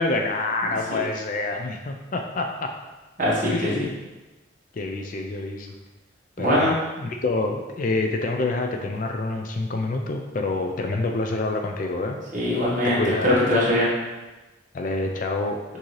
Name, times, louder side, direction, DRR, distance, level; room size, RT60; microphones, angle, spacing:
voice 1, 0.0-2.7 3.5-3.9 4.7-5.7 6.4-12.2 12.8-13.4 14.7-15.6, left 2 dB, 40° left, 3 dB, 0.4 m, -27 dB
voice 2, 3.2-3.8 6.4-6.7 12.3-13.9, left 1 dB, 40° right, -7 dB, 1.4 m, -22 dB
6.2 x 2.7 x 3.1 m, 1.1 s
head